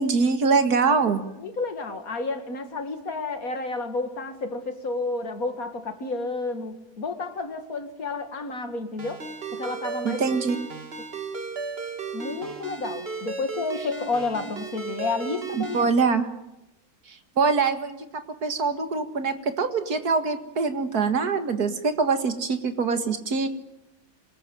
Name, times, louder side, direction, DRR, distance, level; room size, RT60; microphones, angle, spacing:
voice 1, 0.0-1.2 10.0-10.6 15.5-16.3 17.1-23.5, right 4 dB, 80° right, 9 dB, 2.3 m, -24 dB
voice 2, 1.4-9.2 9.5-10.4 11.0-11.1 12.1-15.9, left 3 dB, 65° left, 7 dB, 2.7 m, -31 dB
Ringtone, 9.0-15.9, right 4 dB, 40° right, 2.3 m, -35 dB
26.5 x 20.0 x 9.2 m, 0.92 s
omnidirectional pair, 1.6 m